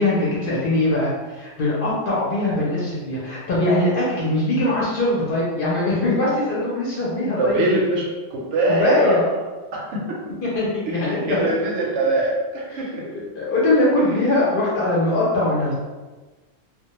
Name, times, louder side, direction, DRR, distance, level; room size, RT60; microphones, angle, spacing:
voice 1, 0.0-7.6 8.7-9.2 10.4-11.4 12.7-15.7, left 2 dB, 55° left, -6 dB, 0.7 m, -21 dB
voice 2, 7.4-9.4 9.7-10.2 10.9-13.1, right 2 dB, 75° right, -2 dB, 0.9 m, -23 dB
2.1 x 2.1 x 2.9 m, 1.2 s
omnidirectional pair, 1.3 m